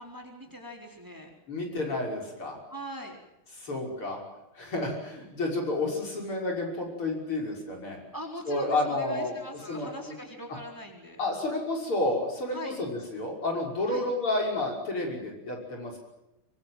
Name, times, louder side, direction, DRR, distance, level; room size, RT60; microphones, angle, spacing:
voice 1, 0.0-1.3 2.7-3.2 8.1-11.2 12.5-12.8 13.9-14.1, equal, 10° right, 2 dB, 4.1 m, -41 dB
voice 2, 1.5-2.6 3.6-4.2 4.6-8.0 8.5-10.1 11.2-16.0, left 2 dB, 75° left, 0 dB, 6.9 m, -30 dB
24.5 x 22.5 x 7.6 m, 0.89 s
omnidirectional pair, 2.4 m